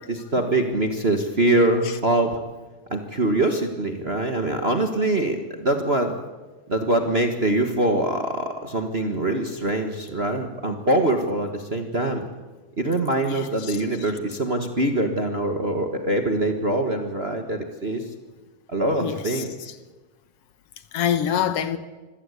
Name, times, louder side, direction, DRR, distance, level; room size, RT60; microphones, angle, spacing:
voice 1, 0.1-2.4 2.9-6.1 6.7-12.2 12.8-18.0 18.7-19.5, right 1 dB, 40° right, 0.8 m, -23 dB
voice 2, 13.3-13.8 19.0-19.4 20.9-21.8, left 9 dB, 60° left, 1.8 m, -26 dB
25.5 x 17.0 x 8.3 m
omnidirectional pair, 3.6 m